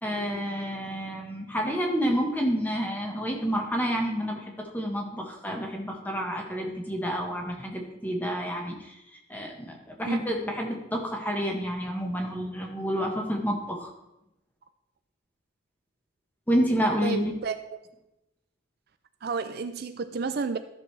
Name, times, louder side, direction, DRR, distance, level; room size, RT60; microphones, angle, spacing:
voice 1, 0.0-9.0 9.3-13.9 16.5-17.3, equal, 10° left, 1 dB, 1.4 m, -29 dB
voice 2, 17.0-17.8 19.2-20.6, right 4 dB, 50° right, 10 dB, 0.4 m, -31 dB
14.0 x 6.4 x 3.3 m, 0.90 s
head